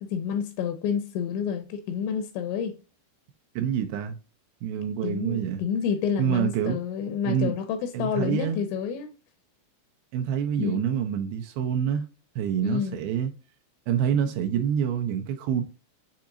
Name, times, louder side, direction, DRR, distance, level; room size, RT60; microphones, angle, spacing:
voice 1, 0.0-2.8 5.0-9.1 10.6-10.8 12.6-13.0, left 7 dB, 85° left, 2.9 m, -29 dB
voice 2, 3.6-4.2 4.6-5.6 6.2-6.8 7.2-7.5 7.9-8.6 10.1-12.0 12.4-13.3 13.9-15.6, right 8 dB, 85° right, 2.2 m, -26 dB
7.0 x 2.8 x 2.5 m
omnidirectional pair, 5.2 m